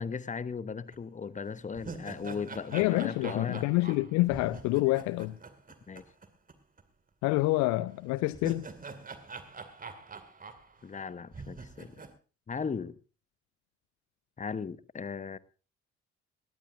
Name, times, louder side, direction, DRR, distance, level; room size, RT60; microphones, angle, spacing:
voice 1, 0.0-3.7 5.9-6.0 10.8-11.9 12.5-12.9 14.4-15.4, left 5 dB, 25° left, 1.0 m, -37 dB
sound 1, 0.9-1.0 1.5-6.5 6.8-6.9 8.1-11.0 11.3-12.1, right 4 dB, 25° right, 2.3 m, -45 dB
voice 2, 2.7-5.4 7.2-8.7, left 19 dB, 55° left, 0.6 m, -27 dB
19.0 x 18.5 x 2.6 m
figure-of-eight pair, 45°, 33 cm